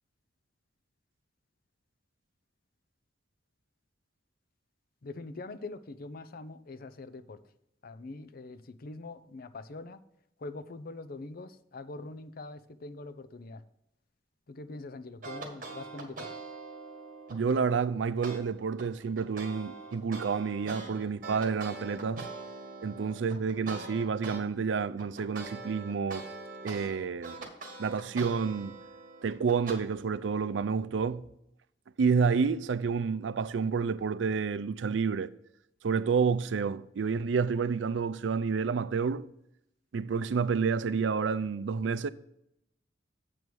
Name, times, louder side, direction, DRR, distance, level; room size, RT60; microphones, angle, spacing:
voice 1, 5.0-7.4 7.8-10.0 10.4-13.6 14.5-16.3, left 2 dB, 55° left, 0.6 m, -43 dB
sound 1, 15.2-17.6 18.2-18.4 18.8-24.4 24.8-29.7, right 3 dB, 50° right, 1.6 m, -43 dB
voice 2, 17.3-22.3 22.8-26.3 26.6-27.5 27.8-28.7 29.2-31.3 32.0-35.3 35.8-39.3 39.9-42.1, right 5 dB, 90° right, 0.4 m, -29 dB
7.7 x 4.7 x 6.9 m
head